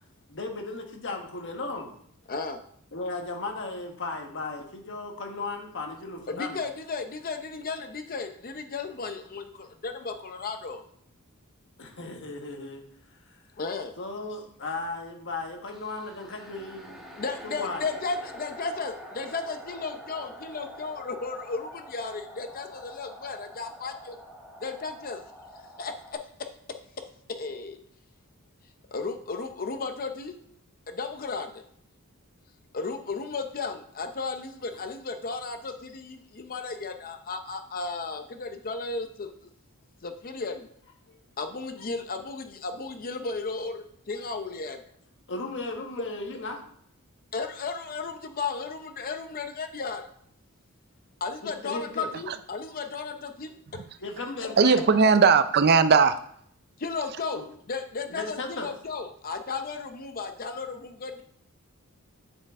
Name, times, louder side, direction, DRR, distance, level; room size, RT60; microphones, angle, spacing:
voice 1, 0.3-1.9 2.9-6.6 11.8-12.8 13.3-13.4 14.0-17.1 17.4-17.8 41.1-41.2 45.3-46.6 51.4-52.1 54.0-54.9 57.3-57.4 58.1-58.7, left 3 dB, 60° left, 3 dB, 1.5 m, -36 dB
voice 2, 2.3-2.6 6.3-10.8 13.6-13.9 17.2-24.2 24.6-25.2 25.8-26.2 27.3-27.8 28.9-30.4 30.9-31.6 32.7-39.5 40.0-40.7 41.4-44.8 47.3-50.1 51.2-53.5 54.4-54.5 56.8-61.2, left 4 dB, 40° left, 7 dB, 0.7 m, -34 dB
sound 1, 15.7-26.1, equal, ahead, 1.3 m, -46 dB
voice 3, 54.6-56.2, right 5 dB, 50° right, 12 dB, 0.5 m, -18 dB
7.8 x 7.4 x 3.7 m, 0.66 s
head